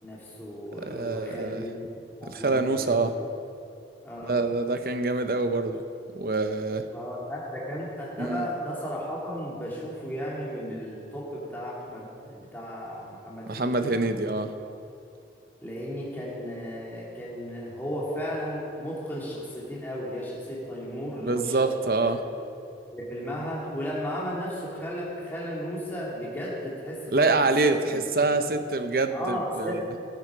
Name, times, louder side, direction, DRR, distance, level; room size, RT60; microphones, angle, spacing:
voice 1, 0.0-1.7 2.2-3.1 4.0-4.5 6.9-13.9 15.6-22.1 22.9-28.0 28.4-28.5 29.1-29.8, equal, 10° left, -6 dB, 2.9 m, -35 dB
voice 2, 0.8-1.6 2.3-3.1 4.2-5.8 6.1-6.8 8.2-8.5 13.5-14.5 21.2-22.2 27.1-29.8, right 3 dB, 55° right, 8 dB, 0.7 m, -25 dB
17.0 x 9.1 x 5.1 m, 2.6 s
head